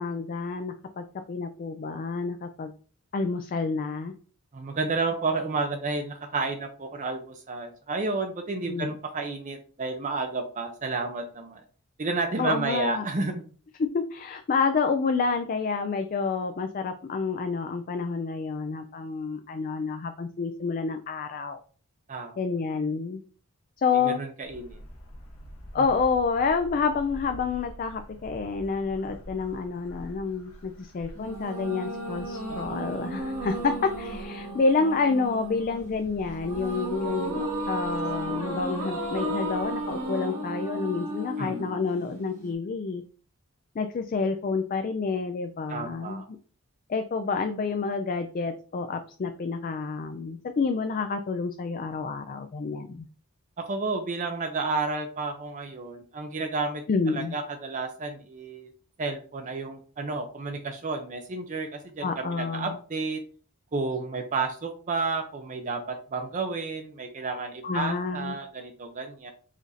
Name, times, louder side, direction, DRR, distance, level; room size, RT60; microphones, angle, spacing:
voice 1, 0.0-2.7 3.1-4.1 8.7-8.9 12.4-13.0 13.8-21.6 22.4-23.2 23.8-24.2 25.7-43.0 43.8-46.2 46.9-53.0 56.9-57.3 62.0-62.8 67.6-68.4, left 4 dB, 40° left, 7 dB, 0.3 m, -29 dB
voice 2, 4.5-11.6 12.0-13.4 22.1-22.4 23.9-24.8 25.8-25.9 32.5-33.0 41.4-41.8 45.7-46.3 53.6-58.7 59.0-63.2 63.7-69.3, right 3 dB, 35° right, 6 dB, 0.5 m, -31 dB
sound 1, 24.4-40.0, equal, 70° left, 1.3 m, -47 dB
sound 2, 31.1-42.5, right 1 dB, 80° right, 2.1 m, -34 dB
5.0 x 2.5 x 4.0 m, 0.41 s
head